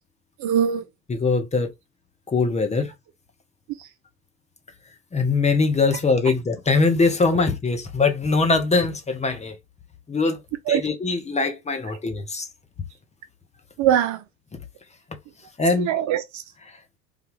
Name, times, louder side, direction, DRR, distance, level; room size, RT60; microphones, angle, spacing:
voice 1, 0.4-0.8 3.8-3.9 7.3-7.4 10.7-10.9 13.8-14.2 15.6-16.4, right 9 dB, 40° right, 0.5 m, -22 dB
voice 2, 1.1-1.7 2.3-2.9 5.1-9.6 10.1-10.4 10.7-12.5 15.6-15.9 16.7-16.8, left 4 dB, 15° left, 0.6 m, -22 dB
3.3 x 2.3 x 3.0 m
hypercardioid pair, 75°, 45 cm